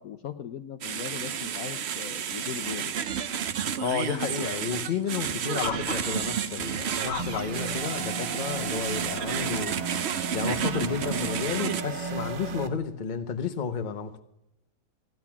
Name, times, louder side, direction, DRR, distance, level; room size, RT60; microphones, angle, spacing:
voice 1, 0.0-2.9, left 9 dB, 65° left, 1.0 m, -39 dB
sound 1, 0.8-11.8, right 8 dB, 60° right, 0.7 m, -31 dB
voice 2, 3.8-9.8 10.3-14.2, left 6 dB, 35° left, 0.9 m, -32 dB
sound 2, 5.5-7.6 8.5-8.8, left 9 dB, 80° left, 1.6 m, -37 dB
sound 3, 7.2-12.7, right 4 dB, 90° right, 1.8 m, -35 dB
15.5 x 11.0 x 5.9 m
omnidirectional pair, 1.9 m